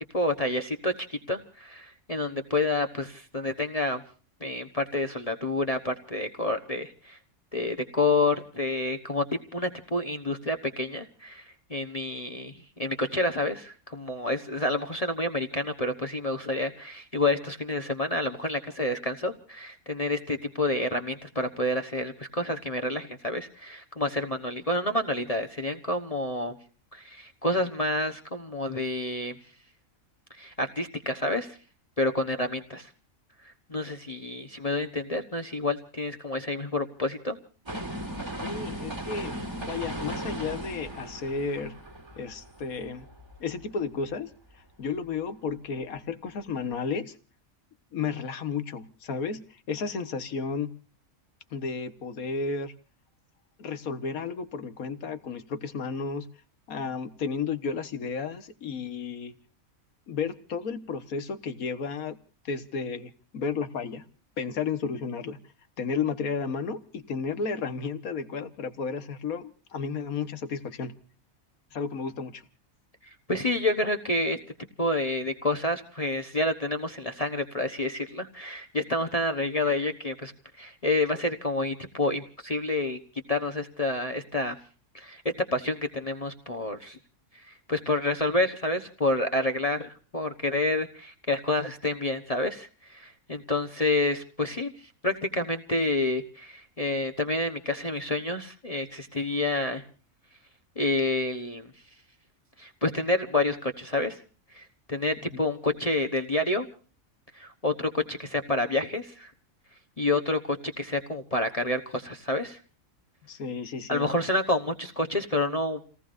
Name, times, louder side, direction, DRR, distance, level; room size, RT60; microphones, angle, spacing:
voice 1, 0.0-4.0 4.4-7.2 7.5-9.2 9.5-26.6 26.9-29.4 30.3-31.6 32.0-32.9 33.4-37.4 73.3-74.4 74.8-80.3 80.6-83.0 83.3-84.5 84.9-85.2 85.5-87.0 87.5-99.8 100.8-101.7 102.6-104.2 104.5-106.7 107.3-109.3 110.0-112.6 113.9-115.9, left 2 dB, 30° left, 4 dB, 1.2 m, -29 dB
sound 1, 37.7-43.7 44.1-44.2, right 1 dB, 20° right, 1.9 m, -37 dB
voice 2, 38.4-41.8 42.2-43.1 43.4-44.3 44.8-47.1 47.9-50.7 51.5-52.7 53.6-56.3 56.7-59.3 60.1-62.2 62.4-64.0 64.4-65.4 65.8-70.9 71.7-72.4 105.3-105.4 113.2-114.1, left 5 dB, 85° left, 11 dB, 1.8 m, -33 dB
29.5 x 18.5 x 2.6 m, 0.39 s
omnidirectional pair, 1.4 m